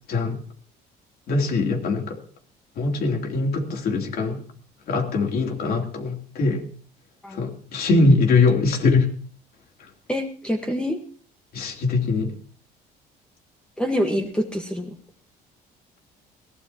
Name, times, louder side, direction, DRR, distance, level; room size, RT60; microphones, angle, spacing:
voice 1, 0.1-0.4 1.3-2.2 2.8-4.4 4.9-6.6 7.3-9.2 9.8-9.9 11.5-12.3, left 3 dB, 60° left, 2 dB, 3.3 m, -22 dB
voice 2, 10.1-11.0 13.8-14.9, equal, 5° left, 2 dB, 1.5 m, -26 dB
21.5 x 16.5 x 3.0 m, 0.43 s
cardioid pair, 110°, 17 cm